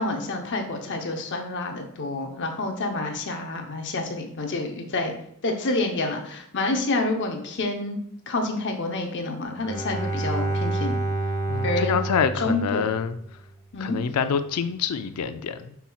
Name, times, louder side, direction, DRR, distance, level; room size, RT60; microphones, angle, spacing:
voice 1, 0.0-5.1 5.4-8.0 8.3-11.0 11.6-12.0 12.4-12.9 13.7-14.0, left 2 dB, 55° left, 0.7 m, -28 dB
Bowed string instrument, 9.5-13.3, right 2 dB, 15° left, 0.6 m, -28 dB
voice 2, 11.5-13.2 13.8-15.8, left 6 dB, 85° left, 0.4 m, -26 dB
5.7 x 4.0 x 2.3 m
head